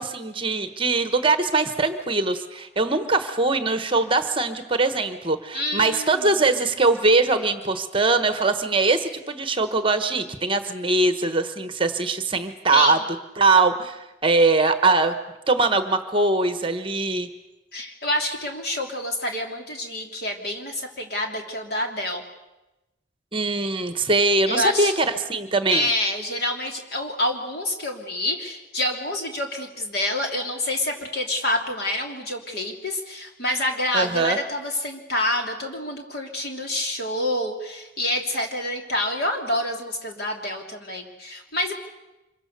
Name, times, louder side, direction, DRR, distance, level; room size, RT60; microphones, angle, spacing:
voice 1, 0.0-13.0 13.4-15.1 15.5-17.3 23.3-25.9 33.9-34.4, right 3 dB, 25° right, 9 dB, 1.1 m, -22 dB
voice 2, 5.5-6.4 12.7-13.0 17.7-22.2 24.4-25.1 25.7-41.7, left 1 dB, 50° left, 2 dB, 3.2 m, -27 dB
26.0 x 23.5 x 6.7 m, 1.0 s
head